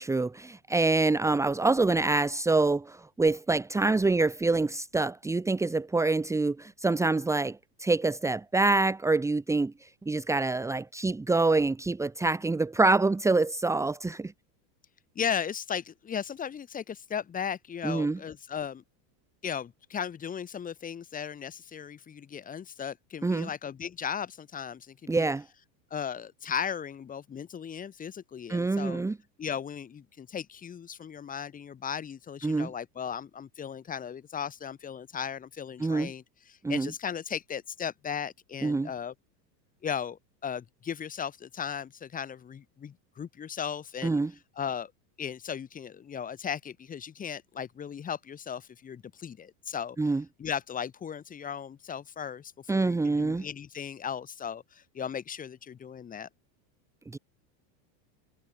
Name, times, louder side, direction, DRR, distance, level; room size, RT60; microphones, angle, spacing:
voice 1, 0.0-14.3 17.8-18.2 23.2-23.5 25.1-25.4 28.5-29.2 32.4-32.7 35.8-36.1 36.6-36.9 38.6-38.9 44.0-44.3 50.0-50.2 52.7-53.5 57.1-57.2, right 3 dB, 5° right, 2.5 m, -26 dB
voice 2, 15.2-18.8 19.4-25.3 25.9-29.0 29.4-39.1 39.8-44.2 44.6-44.9 45.2-50.0 50.4-56.3, left 8 dB, 15° left, 4.1 m, -36 dB
supercardioid pair, 175°, 50 cm